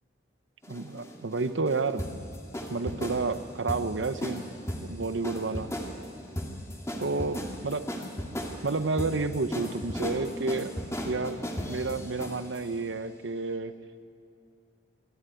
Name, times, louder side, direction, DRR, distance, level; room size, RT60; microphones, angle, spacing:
sound 1, 0.6-12.6, equal, 15° left, 2.3 m, -36 dB
voice 1, 0.7-2.0 2.7-4.5 4.8-5.7 7.0-7.9 8.6-10.7 11.0-11.4 11.7-13.7, right 3 dB, 80° right, 11 dB, 0.9 m, -30 dB
24.5 x 13.0 x 9.3 m, 2.4 s
head